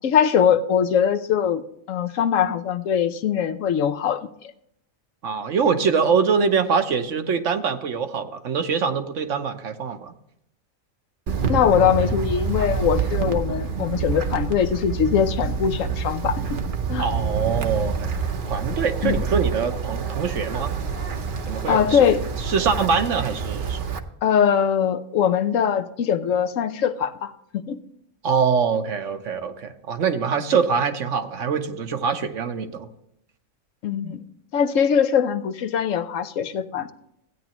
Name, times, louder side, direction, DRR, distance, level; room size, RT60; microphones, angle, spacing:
voice 1, 0.0-4.3 11.5-16.4 16.9-17.1 19.0-19.2 21.7-22.2 24.2-27.8 33.8-34.2 34.5-36.9, left 8 dB, 75° left, 10 dB, 1.1 m, -22 dB
voice 2, 5.2-10.1 17.0-18.1 18.5-20.7 21.5-22.0 22.4-23.8 28.2-32.9, right 5 dB, 70° right, 7 dB, 1.2 m, -24 dB
Wind, 11.3-24.0, right 5 dB, 45° right, 0.8 m, -27 dB
15.5 x 9.4 x 3.0 m, 0.75 s
omnidirectional pair, 1.4 m